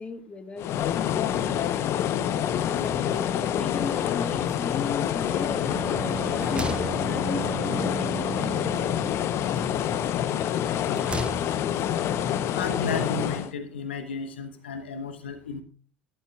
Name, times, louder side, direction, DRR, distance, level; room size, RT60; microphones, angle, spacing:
voice 1, 0.0-1.6 2.2-9.0, left 4 dB, 20° left, 6 dB, 1.9 m, -37 dB
sound 1, 0.6-13.5, left 10 dB, 50° left, 0.9 m, -27 dB
sound 2, 5.3-5.8 6.1-7.7 9.0-9.9 10.5-11.8, right 3 dB, 20° right, 0.7 m, -39 dB
Bowed string instrument, 5.3-9.3, right 7 dB, 35° right, 1.4 m, -36 dB
voice 2, 12.5-15.6, left 4 dB, 75° left, 8 dB, 1.1 m, -33 dB
12.5 x 12.0 x 2.4 m, 0.41 s
figure-of-eight pair, 65°, 6 cm